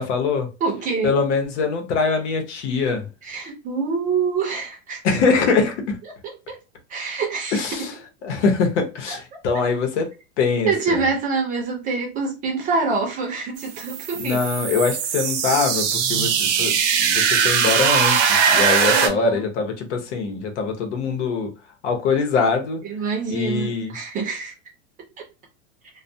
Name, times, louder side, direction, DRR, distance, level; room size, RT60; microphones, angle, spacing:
voice 1, 0.0-0.5 1.0-3.1 5.0-6.0 7.5-7.9 8.2-11.0 14.2-21.5 21.8-22.8 23.3-24.0, left 4 dB, 70° left, 0.9 m, -23 dB
voice 2, 0.6-1.2 3.2-5.0 6.2-6.6 6.9-7.9 9.3-9.4 10.6-14.4 18.9-19.4 22.8-24.5 25.2-25.3, right 4 dB, 20° right, 0.6 m, -26 dB
sound 1, 13.6-19.1, right 7 dB, 70° right, 0.8 m, -20 dB
2.3 x 2.2 x 2.6 m
supercardioid pair, 160°, 36 cm